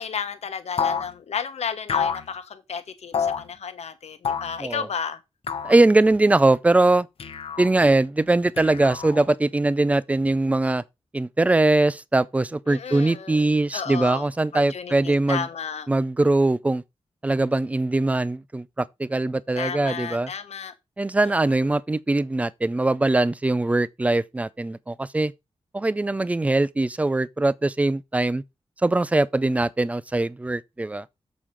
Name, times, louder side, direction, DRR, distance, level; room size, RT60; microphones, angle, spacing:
voice 1, 0.0-5.2 12.7-13.4 13.7-14.3 14.5-15.9 19.6-20.7, left 7 dB, 80° left, 1.3 m, -33 dB
sound 1, 0.8-1.1 1.9-2.3 3.1-3.4 4.2-4.6 5.5-5.8 7.2-7.7 8.6-9.3, left 7 dB, 60° left, 0.9 m, -27 dB
voice 2, 5.6-7.1 7.6-10.8 11.1-15.5 15.9-16.8 17.2-20.3 21.0-25.3 25.7-28.4 28.8-31.1, right 2 dB, 15° right, 0.4 m, -21 dB
7.4 x 6.1 x 4.9 m
wide cardioid pair, 180°, 11 cm